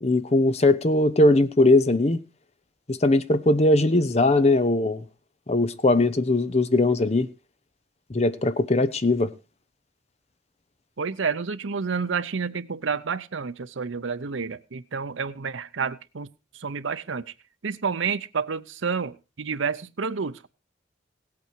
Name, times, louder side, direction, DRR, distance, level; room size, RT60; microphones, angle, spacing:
voice 1, 0.0-2.2 2.9-5.0 5.5-7.3 8.1-9.3, left 2 dB, 35° left, 0.7 m, -20 dB
voice 2, 11.0-16.3 16.5-17.3 17.6-20.5, right 5 dB, 80° right, 0.7 m, -29 dB
17.0 x 8.5 x 4.5 m
head